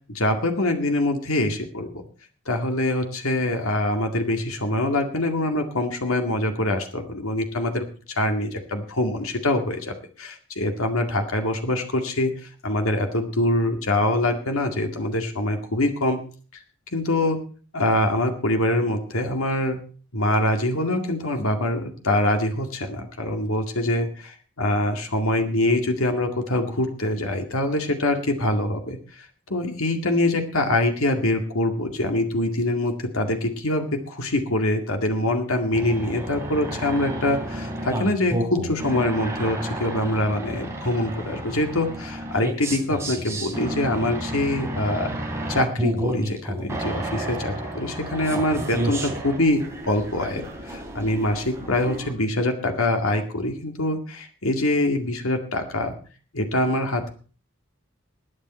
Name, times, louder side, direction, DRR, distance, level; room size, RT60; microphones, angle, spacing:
voice 1, 0.1-2.0 2.5-12.3 12.6-16.2 16.9-17.4 17.7-19.8 20.1-24.1 24.6-45.2 45.5-56.0 56.3-57.1, left 1 dB, 75° left, 5 dB, 2.1 m, -24 dB
sound 1, 35.7-52.1, right 1 dB, 15° right, 3.3 m, -31 dB
20.5 x 8.9 x 4.3 m, 0.40 s
head